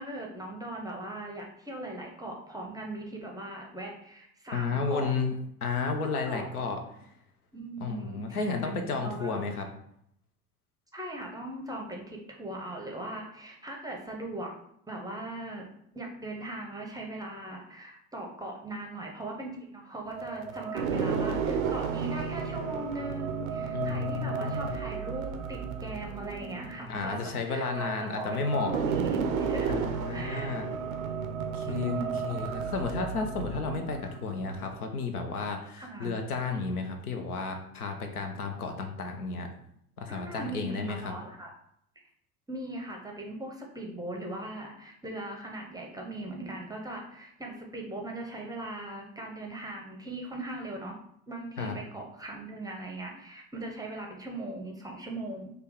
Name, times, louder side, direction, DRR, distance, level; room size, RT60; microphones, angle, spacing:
voice 1, 0.0-5.1 6.0-6.5 7.5-9.5 10.9-14.5 14.9-15.7 15.9-27.2 27.5-28.4 28.7-30.5 31.7-32.2 35.8-36.2 40.1-41.5 42.5-50.9 51.3-55.5, right 1 dB, 10° right, 0 dB, 0.6 m, -39 dB
voice 2, 4.5-5.3 5.6-6.8 7.8-9.7 23.7-24.7 26.9-28.7 29.7-30.7 31.5-32.0 32.2-39.5 40.0-41.1 51.6-51.7, left 4 dB, 80° left, 4 dB, 0.6 m, -32 dB
sound 1, 20.1-34.8, right 6 dB, 70° right, 0.6 m, -33 dB
3.8 x 2.2 x 3.6 m, 0.72 s
figure-of-eight pair, 65°, 44 cm